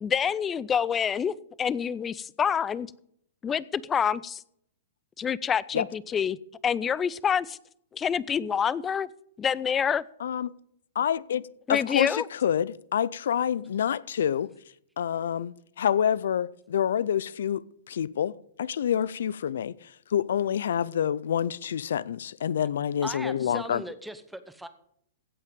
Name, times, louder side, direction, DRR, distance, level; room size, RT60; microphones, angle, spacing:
voice 1, 0.0-2.9 3.4-4.4 5.2-6.4 6.6-7.6 7.9-9.1 9.4-10.0 11.7-12.3, left 7 dB, 20° left, 0.4 m, -27 dB
voice 2, 11.0-11.4 11.7-14.5 15.0-23.8, left 9 dB, 75° left, 0.4 m, -27 dB
voice 3, 23.0-24.7, right 1 dB, 5° right, 1.0 m, -38 dB
16.5 x 5.7 x 5.3 m
hypercardioid pair, 125°, 0 cm